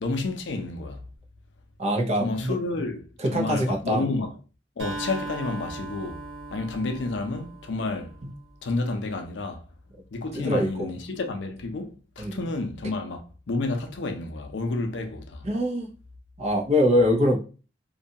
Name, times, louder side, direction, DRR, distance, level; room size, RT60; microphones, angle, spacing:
voice 1, 0.0-1.0 2.2-4.3 4.8-6.2 6.5-8.2 8.6-9.6 10.1-15.5, left 3 dB, 70° left, 0.5 m, -30 dB
voice 2, 1.8-2.6 3.2-4.1 8.2-8.3 10.3-10.9 12.2-12.4 15.4-15.9 16.4-17.4, equal, 35° right, 0.5 m, -23 dB
Acoustic guitar, 4.8-8.7, right 2 dB, 75° right, 1.1 m, -38 dB
2.7 x 2.2 x 2.7 m
head